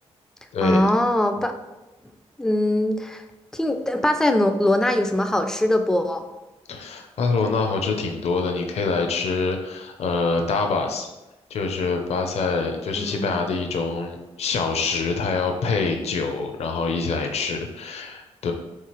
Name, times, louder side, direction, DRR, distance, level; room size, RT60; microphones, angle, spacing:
voice 1, 0.6-1.5 2.4-3.2 3.5-6.3 13.0-13.3, left 1 dB, 5° left, 7 dB, 0.3 m, -21 dB
voice 2, 6.7-11.1 11.5-18.5, left 4 dB, 65° left, 4 dB, 0.5 m, -25 dB
4.7 x 3.5 x 2.9 m, 1.0 s
wide cardioid pair, 125°, 12 cm